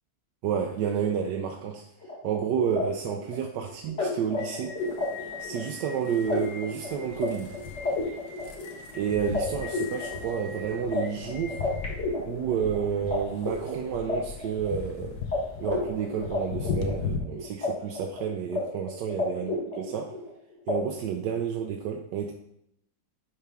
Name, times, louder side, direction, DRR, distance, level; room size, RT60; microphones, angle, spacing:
voice 1, 0.4-1.8 2.2-4.8 5.4-7.6 8.9-11.6 12.2-15.2 15.6-20.2 20.7-22.3, right 7 dB, 75° right, 2 dB, 1.2 m, -30 dB
sound 1, 2.0-13.2 13.4-15.0 15.3-15.4 15.6-17.7 17.9-18.6 18.9-20.3 20.7-20.8, left 3 dB, 40° left, 2.0 m, -32 dB
sound 2, 4.8-17.2, left 5 dB, 65° left, 1.2 m, -39 dB
10.0 x 3.4 x 3.4 m, 0.74 s
omnidirectional pair, 1.9 m